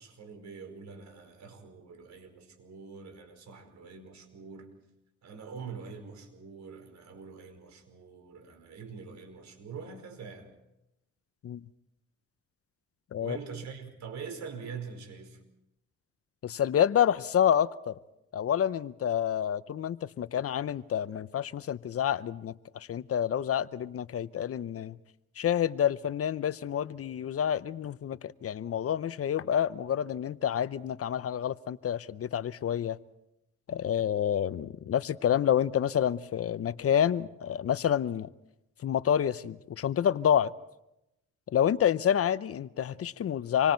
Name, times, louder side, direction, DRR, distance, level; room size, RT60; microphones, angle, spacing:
voice 1, 0.0-4.7 5.2-10.5 13.2-15.4, right 5 dB, 65° right, 4.9 m, -44 dB
voice 2, 16.4-17.9 18.3-25.0 25.4-33.0 33.7-38.3 38.8-40.5 41.5-43.7, left 9 dB, 50° left, 0.7 m, -28 dB
27.5 x 24.5 x 4.5 m
cardioid pair, 90°, 30 cm